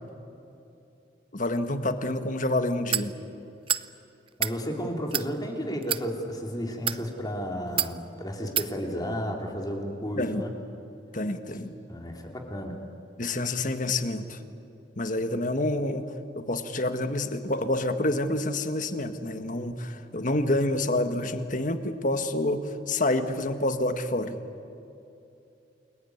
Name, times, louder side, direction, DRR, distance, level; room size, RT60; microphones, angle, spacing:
voice 1, 1.3-3.1 10.1-10.5 11.1-11.8 13.2-14.4 15.0-16.1 16.3-24.4, left 1 dB, 45° left, 9 dB, 1.6 m, -28 dB
sound 1, 2.9-3.1 3.7-3.9 4.3-4.6 5.1-5.3 5.8-6.0 6.7-7.0 7.8-7.9 8.6-8.7, right 9 dB, 30° right, 0.6 m, -27 dB
voice 2, 4.4-10.5 11.9-12.7, equal, 20° left, 2 dB, 3.3 m, -33 dB
29.5 x 21.5 x 9.5 m, 2.8 s
head